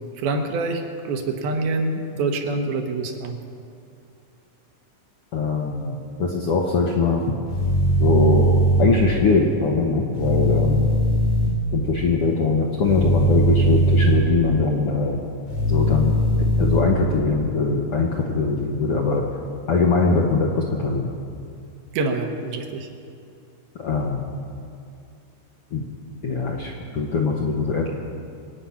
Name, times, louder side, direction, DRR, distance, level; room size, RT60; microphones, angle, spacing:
voice 1, 0.2-3.4 21.9-22.9, right 3 dB, 85° right, 4 dB, 3.1 m, -26 dB
voice 2, 5.3-7.4 8.0-10.9 11.7-15.2 15.7-19.2 19.7-21.1 23.8-24.3 25.7-25.8 26.2-27.9, left 3 dB, 70° left, -1 dB, 1.4 m, -22 dB
sound 1, 7.5-8.8 10.1-11.5 12.8-14.1 15.5-16.8, equal, 85° left, 6.6 m, -19 dB
25.5 x 9.1 x 5.8 m, 2.4 s
omnidirectional pair, 4.2 m